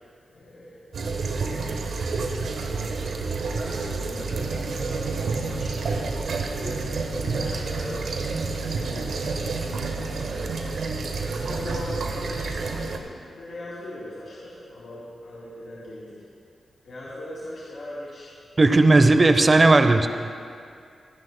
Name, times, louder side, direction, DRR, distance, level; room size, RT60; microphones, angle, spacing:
voice 1, 0.3-2.0 2.6-5.0 5.5-8.1 8.5-10.6 11.1-16.2 16.8-18.3 18.9-19.4, left 1 dB, 75° left, -8 dB, 2.7 m, -40 dB
sound 1, 0.9-13.0, right 4 dB, 80° right, 1.1 m, -29 dB
voice 2, 18.6-20.1, right 2 dB, 40° right, 8 dB, 0.8 m, -16 dB
28.0 x 11.0 x 2.2 m, 2.3 s
supercardioid pair, 40°, 0 cm